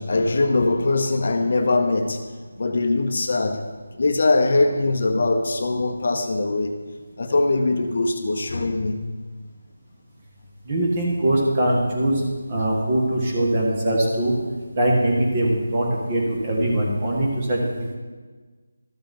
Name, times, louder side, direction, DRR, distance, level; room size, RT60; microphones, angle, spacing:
voice 1, 0.0-2.2 2.6-3.6 3.9-6.8 7.2-9.0 12.6-12.7, left 2 dB, 55° left, 6 dB, 0.9 m, -21 dB
voice 2, 10.7-12.1 12.5-14.3 14.8-17.9, right 1 dB, 30° right, -2 dB, 1.9 m, -22 dB
12.5 x 7.0 x 3.8 m, 1.4 s
figure-of-eight pair, 170°, 0 cm